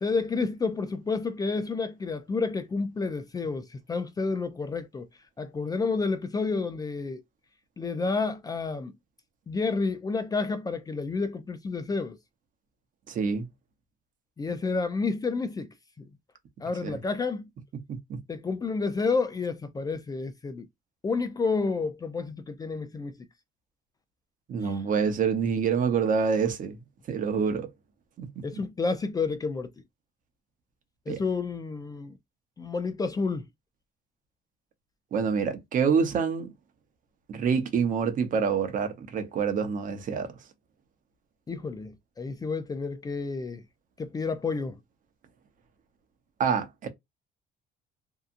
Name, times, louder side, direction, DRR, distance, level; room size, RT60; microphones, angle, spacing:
voice 1, 0.0-5.1 5.4-7.2 7.8-8.9 9.5-12.2 14.4-15.7 16.6-17.5 18.3-20.7 21.0-23.1 24.6-24.8 28.4-29.7 31.1-32.1 32.6-33.5 41.5-43.6 44.0-44.7, left 4 dB, 20° left, 0.4 m, -30 dB
voice 2, 13.1-13.5 16.8-17.0 17.9-18.2 24.5-26.8 27.1-27.7 28.2-28.3 31.1-31.2 35.1-36.5 37.3-40.3 46.4-46.9, right 6 dB, 50° right, 0.8 m, -26 dB
2.8 x 2.3 x 2.4 m
cardioid pair, 110°, 17 cm